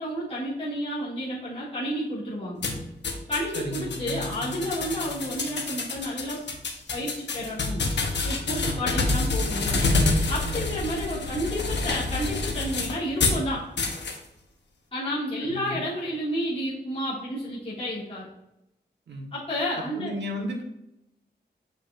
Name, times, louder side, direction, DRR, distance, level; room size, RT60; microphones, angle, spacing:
voice 1, 0.0-2.6 3.3-6.4 6.9-7.9 8.2-9.8 10.3-13.6 14.9-18.3 19.3-20.1, equal, 35° left, -9 dB, 2.1 m, -31 dB
sound 1, 2.6-13.4 13.8-14.2, left 3 dB, 75° left, 0.9 m, -27 dB
voice 2, 3.5-4.0 10.4-10.7 15.4-15.8 19.1-19.3 20.0-20.6, equal, 75° right, 1 dB, 1.3 m, -34 dB
7.3 x 5.2 x 2.5 m, 0.85 s
wide cardioid pair, 145°, 18 cm